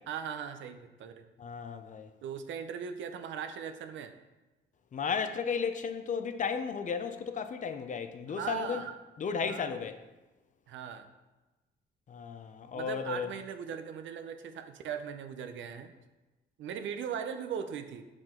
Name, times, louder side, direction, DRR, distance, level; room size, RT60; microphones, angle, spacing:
voice 1, 0.1-1.3 2.2-4.1 8.3-8.9 9.3-9.7 10.7-11.1 12.7-15.9 16.6-18.1, right 7 dB, 70° right, 0.6 m, -39 dB
voice 2, 1.4-2.1 4.9-8.8 9.2-10.0 12.1-13.3, left 6 dB, 40° left, 0.5 m, -34 dB
5.8 x 4.9 x 3.7 m
cardioid pair, 90°, 20 cm